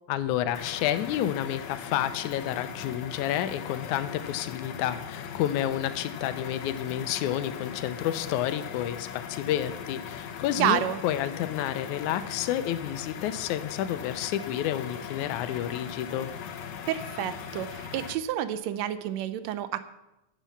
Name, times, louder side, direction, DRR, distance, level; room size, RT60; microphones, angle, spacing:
voice 1, 0.1-16.3, left 11 dB, 90° left, 12 dB, 2.1 m, -30 dB
sound 1, 0.5-18.1, left 7 dB, 70° left, 2.0 m, -39 dB
voice 2, 10.6-11.0 16.9-19.8, right 11 dB, 75° right, 12 dB, 1.8 m, -29 dB
10.5 x 7.5 x 7.1 m, 0.93 s
omnidirectional pair, 3.4 m